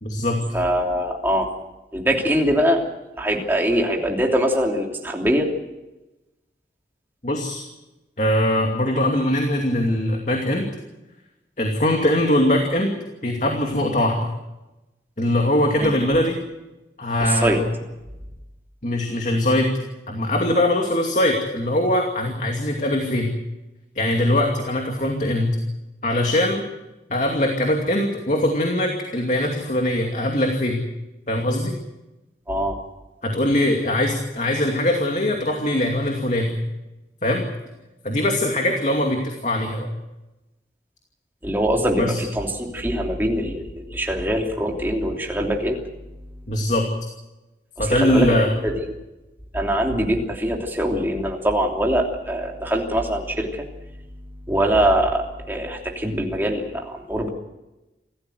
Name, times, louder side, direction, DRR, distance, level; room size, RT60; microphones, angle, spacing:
voice 1, 0.0-0.4 7.2-7.6 8.2-10.7 11.6-13.0 13.2-14.3 15.2-16.4 17.0-17.7 18.8-19.7 20.1-23.3 24.0-25.5 26.0-26.6 27.1-30.8 31.3-31.7 33.2-36.6 37.2-37.4 38.0-39.9 42.0-42.2 46.5-46.8 47.8-48.5, left 1 dB, 40° left, 2 dB, 2.6 m, -21 dB
voice 2, 0.5-1.5 1.9-2.8 3.2-5.5 15.7-15.9 17.2-17.6 32.5-32.8 41.4-45.8 47.8-48.8 49.5-53.6 54.5-57.3, equal, 10° right, 0 dB, 3.1 m, -23 dB
27.0 x 14.5 x 7.9 m, 1.0 s
head